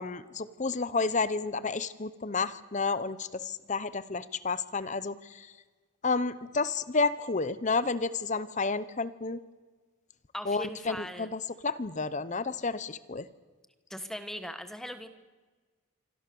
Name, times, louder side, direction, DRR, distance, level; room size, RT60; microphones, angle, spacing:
voice 1, 0.0-5.5 6.0-9.4 10.5-13.3, left 4 dB, 35° left, 15 dB, 0.7 m, -31 dB
voice 2, 10.3-11.3 13.9-15.1, equal, ahead, 9 dB, 1.2 m, -39 dB
26.0 x 25.5 x 6.9 m, 1.4 s
head